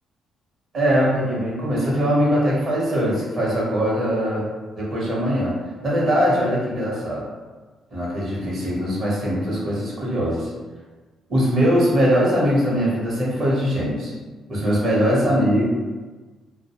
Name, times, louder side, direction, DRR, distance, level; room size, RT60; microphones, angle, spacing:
voice 1, 0.7-4.5 4.8-5.6 5.8-7.3 7.9-10.5 11.3-14.1 14.5-15.7, equal, 55° right, -5 dB, 0.9 m, -21 dB
2.3 x 2.1 x 2.9 m, 1.3 s
cardioid pair, 90°, 0 cm